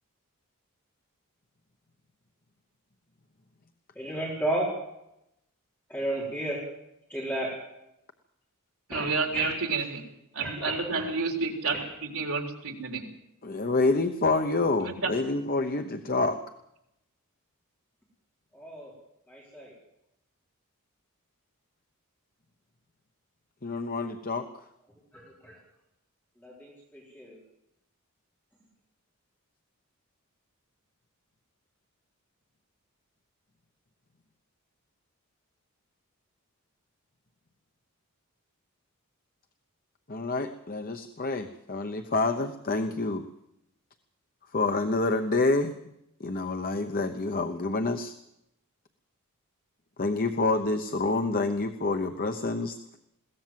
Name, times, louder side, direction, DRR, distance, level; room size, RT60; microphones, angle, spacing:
voice 1, 3.9-4.7 5.9-6.6 7.1-7.5 8.9-9.5 10.4-11.1 11.7-11.8 18.5-18.9 19.3-19.7 25.1-25.5 26.4-27.4, right 1 dB, 10° left, -5 dB, 4.8 m, -33 dB
voice 2, 8.9-10.0 10.3-13.0 14.8-15.1, right 4 dB, 75° right, 3 dB, 3.8 m, -30 dB
voice 3, 13.4-16.4 23.6-24.5 40.1-43.2 44.5-45.7 46.2-48.1 50.0-53.0, left 3 dB, 40° left, 7 dB, 0.9 m, -27 dB
21.5 x 17.0 x 7.6 m, 0.84 s
head